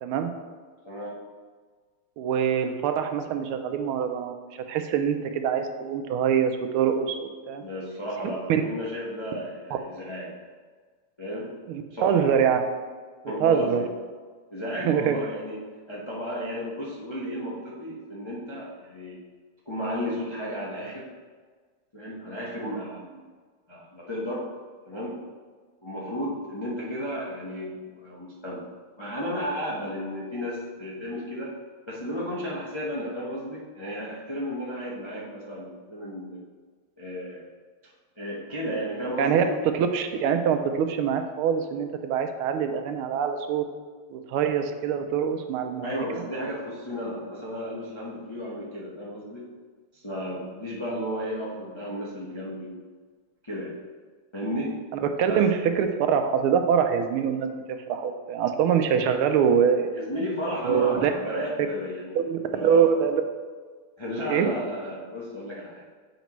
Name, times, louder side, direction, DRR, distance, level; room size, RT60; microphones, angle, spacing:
voice 1, 0.8-1.2 7.6-10.3 11.2-11.5 11.9-12.2 13.2-13.9 14.5-19.2 19.7-21.1 21.9-23.3 23.7-24.5 24.8-25.1 25.8-28.6 29.0-31.5 31.9-36.4 37.0-37.5 38.2-39.5 45.8-49.4 49.9-52.9 53.4-53.8 54.3-54.8 55.3-55.5 59.9-62.2 62.5-62.8 64.0-65.8, equal, 45° left, -6 dB, 0.3 m, -33 dB
voice 2, 2.2-7.2 7.5-7.6 8.5-8.6 11.7-12.6 13.4-13.8 14.8-15.2 39.2-39.4 39.8-43.6 44.1-45.9 55.0-59.9 60.6-61.1 62.1-63.2 64.3-64.5, right 7 dB, 80° right, 6 dB, 1.4 m, -24 dB
7.9 x 5.1 x 3.1 m, 1.5 s
omnidirectional pair, 2.4 m